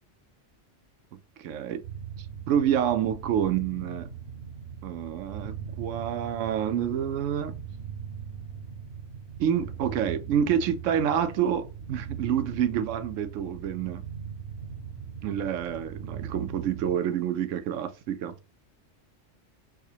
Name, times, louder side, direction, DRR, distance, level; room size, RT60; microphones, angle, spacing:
voice 1, 1.1-1.8 2.2-4.1 4.8-7.5 9.4-14.0 15.2-18.4, right 9 dB, 85° right, 0.9 m, -28 dB
sound 1, 1.8-17.0, right 7 dB, 60° right, 0.9 m, -40 dB
4.7 x 2.1 x 2.8 m
omnidirectional pair, 1.3 m